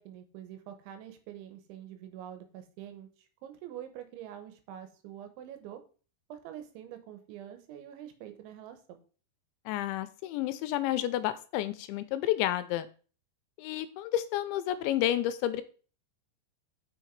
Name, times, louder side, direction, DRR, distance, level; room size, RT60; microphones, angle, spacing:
voice 1, 0.0-3.1 3.4-5.8 6.3-9.0, right 10 dB, 85° right, 8 dB, 3.5 m, -45 dB
voice 2, 9.7-12.9 13.6-15.6, left 13 dB, 85° left, 12 dB, 2.9 m, -30 dB
6.7 x 6.5 x 4.6 m, 0.38 s
omnidirectional pair, 5.3 m